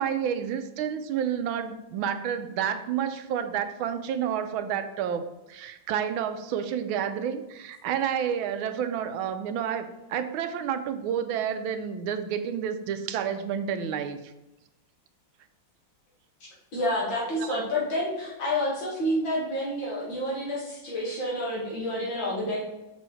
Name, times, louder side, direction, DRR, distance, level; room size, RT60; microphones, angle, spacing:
voice 1, 0.0-14.2 17.4-17.6, right 8 dB, 80° right, 9 dB, 1.4 m, -30 dB
voice 2, 16.7-22.6, left 1 dB, 70° left, -5 dB, 2.6 m, -29 dB
6.8 x 6.1 x 3.2 m, 0.97 s
omnidirectional pair, 2.2 m